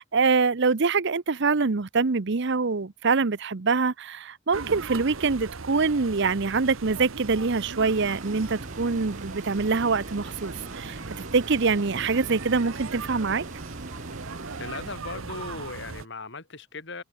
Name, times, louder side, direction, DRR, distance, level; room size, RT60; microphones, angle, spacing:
voice 1, 0.0-11.0 11.3-13.4, right 4 dB, 55° right, 0.7 m, -24 dB
sound 1, 4.5-16.1, right 4 dB, 75° right, 1.2 m, -38 dB
sound 2, 7.8-15.0, right 2 dB, 35° right, 7.2 m, -43 dB
voice 2, 14.6-17.0, left 3 dB, 55° left, 3.8 m, -38 dB
head